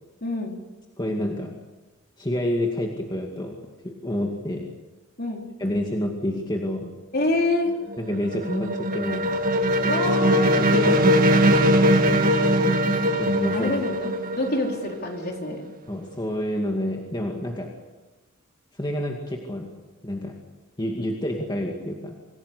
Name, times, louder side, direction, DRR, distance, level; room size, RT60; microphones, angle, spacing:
voice 1, 0.2-0.5 5.2-5.4 7.1-7.7 9.8-10.6 13.5-15.7, left 2 dB, 45° left, 1 dB, 4.0 m, -26 dB
voice 2, 1.0-1.5 2.2-4.7 5.6-6.9 8.0-9.3 10.6-11.4 13.2-13.7 15.9-17.7 18.7-19.7 20.0-20.4 20.8-22.1, left 1 dB, 20° left, 1 dB, 2.2 m, -28 dB
sound 1, 7.7-15.5, equal, 40° right, 1.6 m, -21 dB
26.0 x 17.0 x 8.2 m, 1.2 s
head